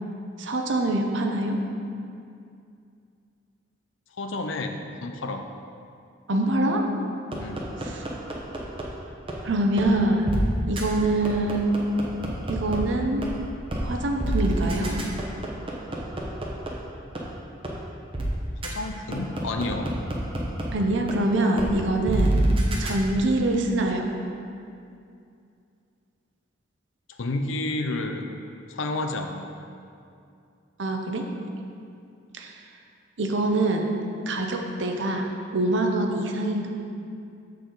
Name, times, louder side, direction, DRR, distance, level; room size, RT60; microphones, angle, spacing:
voice 1, 0.4-1.6 6.3-6.8 7.8-8.0 9.4-11.8 12.5-13.3 13.8-15.0 20.7-22.4 22.8-24.1 30.8-31.3 32.3-32.5 33.2-33.9 34.3-36.7, right 2 dB, 70° right, 3 dB, 0.8 m, -24 dB
voice 2, 4.2-5.5 7.4-7.7 18.6-19.9 27.1-28.2 28.7-29.5, left 2 dB, 80° left, 6 dB, 0.6 m, -30 dB
sound 1, 7.3-8.8 9.3-9.4 9.8-9.9 10.3-10.4 10.8-10.9 11.2-12.8 13.2-13.3 13.7-13.8 14.2-16.7 17.2-17.3 17.6-17.7 18.1-18.3 18.6-18.7 19.1-20.6 21.1-21.2 21.6-21.7 22.1-22.9, right 1 dB, 30° right, 0.9 m, -26 dB
7.4 x 6.7 x 3.9 m, 2.5 s
head